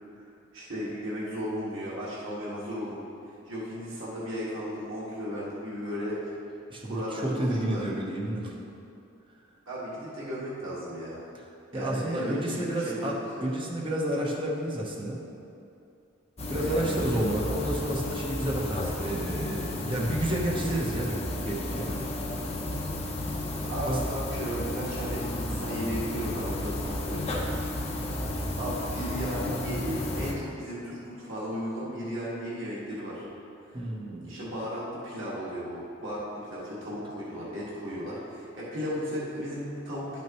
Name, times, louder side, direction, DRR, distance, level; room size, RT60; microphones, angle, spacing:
voice 1, 0.5-3.0 3.5-6.2 6.8-7.8 9.7-11.2 11.7-13.4 16.6-17.0 23.7-27.4 28.6-33.2 33.7-33.8 34.2-40.2, equal, 80° right, -7 dB, 1.8 m, -35 dB
voice 2, 6.7-8.6 11.7-15.2 16.5-21.9 23.8-24.0 33.7-34.3, right 1 dB, 25° right, -3 dB, 0.9 m, -30 dB
sound 1, 16.4-30.3, left 1 dB, 30° left, 0.8 m, -32 dB
11.0 x 6.2 x 3.0 m, 2.6 s
head